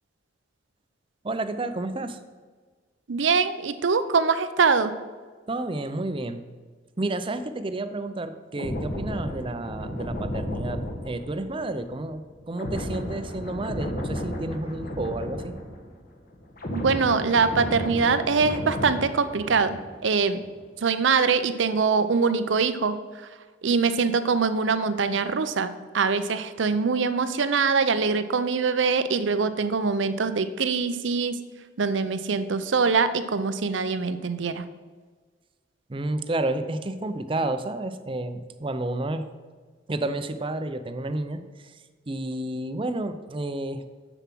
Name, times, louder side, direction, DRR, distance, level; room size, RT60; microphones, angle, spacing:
voice 1, 1.2-2.2 5.5-6.4 7.0-15.5 35.9-39.3 39.9-41.7 42.1-43.8, right 2 dB, 30° right, 10 dB, 0.5 m, -30 dB
voice 2, 3.1-4.9 16.7-20.4 20.8-23.0 23.6-31.4 31.8-34.6, right 5 dB, 90° right, 12 dB, 0.6 m, -23 dB
sound 1, 8.5-16.1 16.3-20.0 20.3-20.6, equal, 50° left, 1.5 m, -33 dB
7.1 x 6.9 x 6.1 m, 1.5 s
head